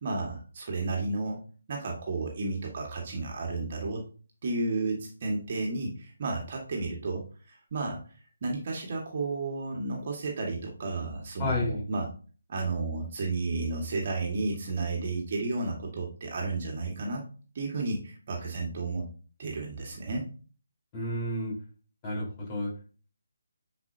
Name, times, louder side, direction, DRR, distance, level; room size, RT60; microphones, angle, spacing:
voice 1, 0.0-1.4 1.7-4.0 4.4-8.0 8.4-12.1 12.5-17.2 17.6-19.0 19.4-20.3, right 3 dB, 40° right, 0 dB, 1.9 m, -32 dB
voice 2, 11.4-11.8 20.9-21.5 22.0-22.7, left 1 dB, 20° left, -5 dB, 4.3 m, -31 dB
10.5 x 4.9 x 2.8 m, 0.39 s
figure-of-eight pair, 150°, 0 cm